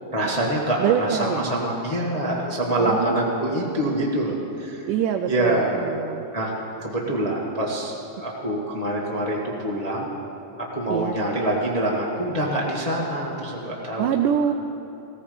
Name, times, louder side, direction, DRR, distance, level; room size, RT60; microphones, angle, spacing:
voice 1, 0.1-4.9 5.3-5.8 6.3-6.5 6.8-10.1 10.6-14.1, right 1 dB, 40° left, -4 dB, 0.5 m, -25 dB
voice 2, 0.8-1.5 2.7-3.2 4.9-6.3 10.9-11.2 14.0-14.5, right 9 dB, 80° right, 5 dB, 2.0 m, -25 dB
17.5 x 15.0 x 5.1 m, 2.8 s
omnidirectional pair, 3.9 m